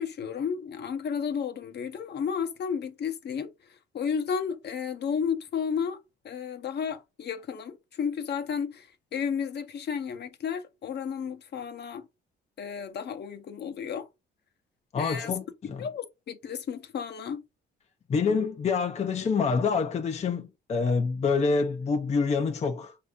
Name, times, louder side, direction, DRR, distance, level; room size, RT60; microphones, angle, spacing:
voice 1, 0.0-3.5 3.9-6.0 6.2-12.1 12.6-14.1 14.9-15.3 15.8-17.4, left 7 dB, 60° left, 0.8 m, -32 dB
voice 2, 14.9-15.9 18.1-23.0, left 5 dB, 35° left, 0.5 m, -27 dB
4.7 x 2.7 x 3.5 m
cardioid pair, 90°, 20 cm